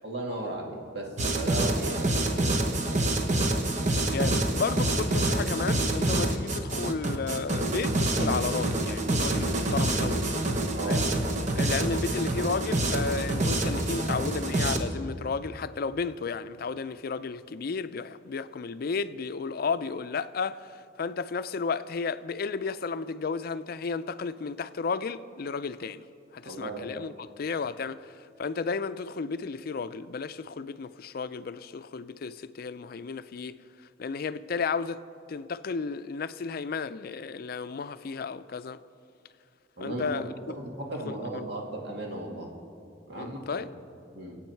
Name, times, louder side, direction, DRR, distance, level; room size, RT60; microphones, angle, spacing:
voice 1, 0.0-1.1 1.4-3.1 10.7-11.0 26.4-26.9 39.8-40.1 40.6-42.5 43.1-43.7 44.1-44.4, right 1 dB, 65° right, 2.1 m, -36 dB
sound 1, 1.2-14.8, right 1 dB, 40° right, 1.1 m, -27 dB
voice 2, 4.1-10.2 10.8-11.0 11.5-20.7 21.0-26.1 26.3-33.5 34.0-38.8 39.8-40.3 41.1-41.4 43.1-43.7, left 5 dB, 55° left, 0.4 m, -33 dB
24.0 x 8.5 x 4.5 m
head